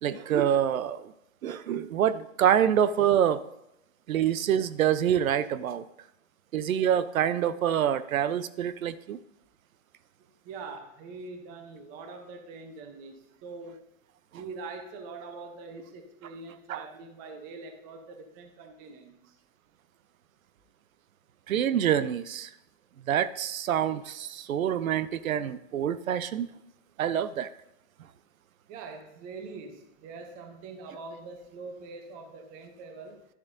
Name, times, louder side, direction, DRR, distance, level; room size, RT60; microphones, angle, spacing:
voice 1, 0.0-1.0 1.4-3.4 4.1-5.8 6.5-9.2 16.7-16.8 21.5-22.5 23.1-26.5 27.0-27.5, right 9 dB, 85° right, 15 dB, 0.7 m, -26 dB
voice 2, 10.4-13.8 14.3-19.4 28.7-33.3, right 4 dB, 20° right, 5 dB, 0.7 m, -43 dB
11.5 x 7.3 x 2.6 m, 0.86 s
hypercardioid pair, 150°, 40 cm